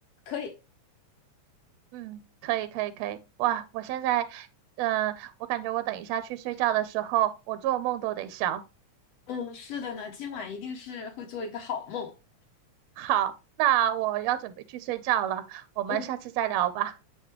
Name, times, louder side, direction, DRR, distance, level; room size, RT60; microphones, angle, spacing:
voice 1, 1.9-4.5 4.8-8.6 13.0-13.3 13.6-16.9, right 13 dB, 80° right, 1.7 m, -28 dB
voice 2, 9.3-12.1 15.9-16.1, left 6 dB, 70° left, 1.8 m, -35 dB
8.1 x 4.2 x 3.0 m
omnidirectional pair, 3.3 m